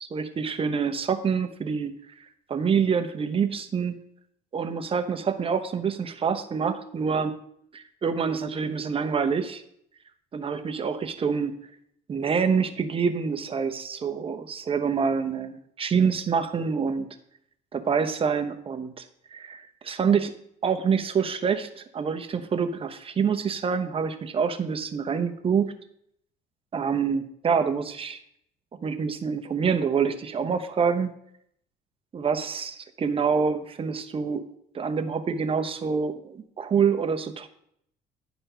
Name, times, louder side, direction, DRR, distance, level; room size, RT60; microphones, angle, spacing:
voice 1, 0.0-1.9 2.5-4.0 4.5-7.3 7.7-9.6 10.3-11.6 12.1-17.1 17.7-19.0 19.3-20.3 20.6-25.7 26.7-28.2 28.8-31.1 32.1-34.5 34.7-37.5, right 6 dB, 35° right, 7 dB, 0.9 m, -26 dB
10.5 x 4.3 x 5.6 m, 0.71 s
cardioid pair, 110°, 17 cm